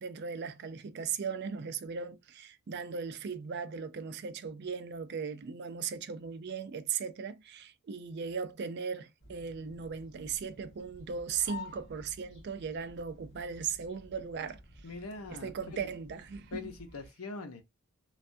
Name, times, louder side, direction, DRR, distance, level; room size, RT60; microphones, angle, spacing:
voice 1, 0.0-14.6 15.3-16.7, right 6 dB, 50° right, 0.4 m, -38 dB
sound 1, 9.2-17.1, left 3 dB, 60° left, 1.8 m, -52 dB
voice 2, 14.8-15.9 16.5-17.6, left 3 dB, 85° left, 0.8 m, -43 dB
3.3 x 2.3 x 2.6 m
head